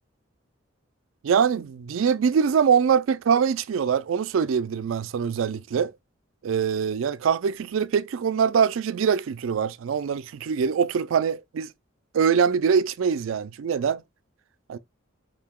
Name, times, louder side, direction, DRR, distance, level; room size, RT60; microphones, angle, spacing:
voice 1, 1.2-5.9 6.4-11.7 12.1-14.0 14.7-14.8, right 7 dB, 75° right, 0.4 m, -23 dB
4.9 x 2.8 x 3.6 m
head